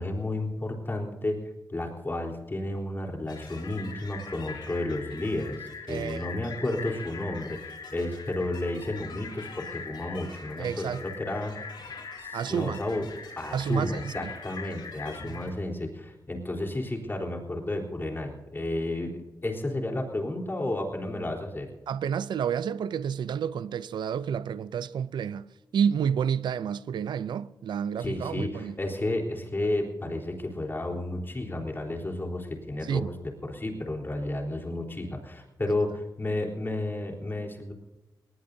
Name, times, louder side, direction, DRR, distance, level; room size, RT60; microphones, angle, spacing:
voice 1, 0.0-1.4 1.7-11.6 12.2-13.1 13.4-21.7 28.0-33.1 33.4-37.7, left 1 dB, 30° left, 3.8 m, -32 dB
sound 1, 3.3-15.5, left 5 dB, 85° left, 3.5 m, -42 dB
voice 2, 5.9-6.4 10.6-11.0 12.3-12.8 13.5-14.3 15.2-15.4 21.9-25.5 25.7-28.8 32.8-33.1, right 7 dB, 90° right, 0.5 m, -30 dB
20.0 x 19.0 x 2.7 m
cardioid pair, 80°, 7 cm